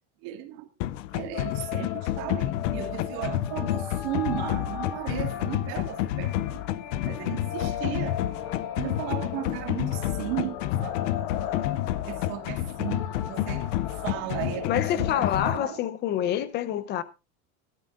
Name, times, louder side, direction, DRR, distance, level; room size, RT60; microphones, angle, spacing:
voice 1, 0.2-0.7 1.1-6.6 7.0-8.2 8.8-11.0 11.5-11.6 12.0-13.7 14.0-15.8, right 14 dB, 50° right, 2.0 m, -35 dB
sound 1, 0.8-15.6, left 13 dB, 65° left, 0.7 m, -30 dB
sound 2, 1.3-15.7, left 9 dB, 45° left, 1.6 m, -38 dB
voice 2, 14.7-17.0, left 11 dB, 25° left, 0.7 m, -27 dB
17.5 x 12.5 x 2.5 m
cardioid pair, 175°, 40 cm